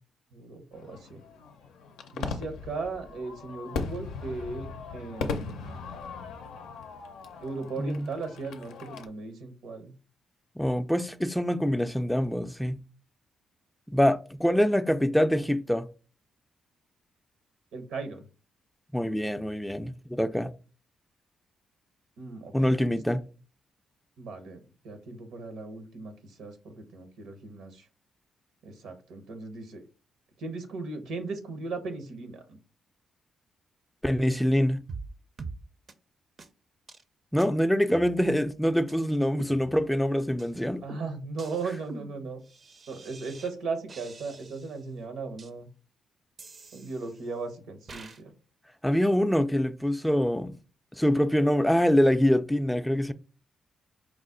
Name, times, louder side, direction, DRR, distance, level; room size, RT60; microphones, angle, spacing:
voice 1, 0.3-1.2 2.1-4.7 4.9-5.8 7.4-9.9 17.7-18.2 22.2-23.0 24.2-27.9 28.6-29.8 30.4-32.6 40.8-42.4 42.9-45.7 46.7-48.3, right 3 dB, 80° right, 0.8 m, -37 dB
Fireworks, 0.7-9.1, left 4 dB, 85° left, 0.5 m, -38 dB
voice 2, 7.8-8.1 10.6-12.8 13.9-15.9 18.9-20.5 22.5-23.3 34.0-34.8 37.3-40.8 48.8-50.6 50.9-53.1, equal, 5° left, 0.4 m, -25 dB
sound 1, 34.9-35.1 35.4-35.6 35.9-36.0 36.4-36.5 36.9-37.0 37.4-37.5 37.9-38.5 38.9-39.0 39.4-40.0 40.4-40.5 40.9-43.5 43.9-44.8 45.4-45.5 46.4-47.3 47.9-48.2, right 4 dB, 50° right, 0.5 m, -45 dB
4.7 x 2.1 x 3.7 m
supercardioid pair, 60°, 0 cm